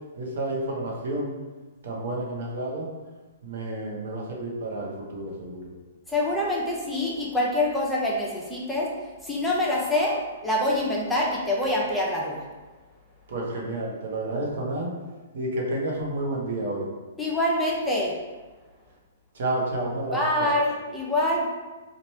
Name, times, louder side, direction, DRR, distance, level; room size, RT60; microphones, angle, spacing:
voice 1, 0.2-1.4 1.8-2.9 3.4-5.6 13.3-14.9 15.3-16.9 19.3-20.5, right 1 dB, 65° right, -2 dB, 1.0 m, -30 dB
voice 2, 6.1-8.9 9.2-12.5 17.2-18.2 20.1-21.5, left 1 dB, 5° left, -5 dB, 0.7 m, -25 dB
3.1 x 2.5 x 4.4 m, 1.2 s
hypercardioid pair, 130°, 0 cm